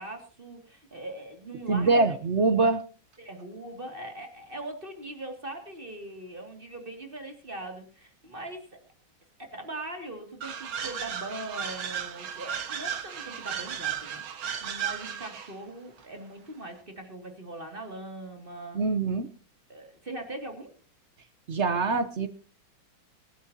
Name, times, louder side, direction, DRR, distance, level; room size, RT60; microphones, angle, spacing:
voice 1, 0.0-2.2 3.2-8.8 9.4-18.8 19.7-20.7, right 2 dB, 25° right, 4 dB, 2.4 m, -41 dB
voice 2, 1.7-2.8 18.7-19.3 21.5-22.3, right 3 dB, 55° right, 10 dB, 0.7 m, -24 dB
sound 1, 10.4-15.6, right 8 dB, 85° right, 2.2 m, -35 dB
24.5 x 12.0 x 2.8 m, 0.37 s
omnidirectional pair, 2.2 m